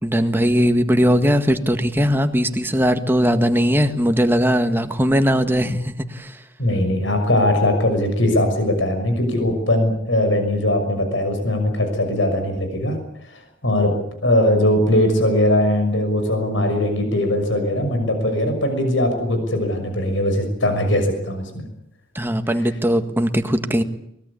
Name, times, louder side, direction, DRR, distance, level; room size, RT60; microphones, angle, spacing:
voice 1, 0.0-6.3 22.1-23.8, equal, 10° right, 7 dB, 1.7 m, -19 dB
voice 2, 6.6-13.0 13.3-14.0 14.2-21.5, left 1 dB, 80° left, 6 dB, 6.2 m, -20 dB
24.0 x 20.5 x 8.5 m, 0.74 s
head